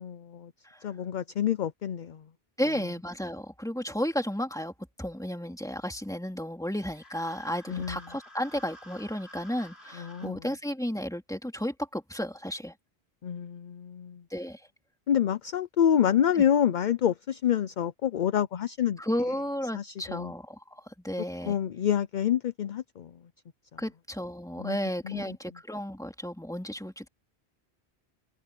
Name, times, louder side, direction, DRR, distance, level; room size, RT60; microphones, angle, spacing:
voice 1, 0.0-0.5 0.8-2.2 7.7-8.0 10.0-10.4 13.2-14.2 15.1-19.0 19.7-20.3 21.5-23.1 24.6-24.8 25.0-25.2, left 9 dB, 55° left, 0.7 m, -27 dB
voice 2, 2.6-4.7 5.0-12.7 14.3-14.6 16.3-16.4 19.0-21.6 23.8-27.1, equal, 5° left, 2.5 m, -33 dB
sound 1, 6.8-10.3, equal, 80° left, 4.7 m, -51 dB
omnidirectional pair, 1.1 m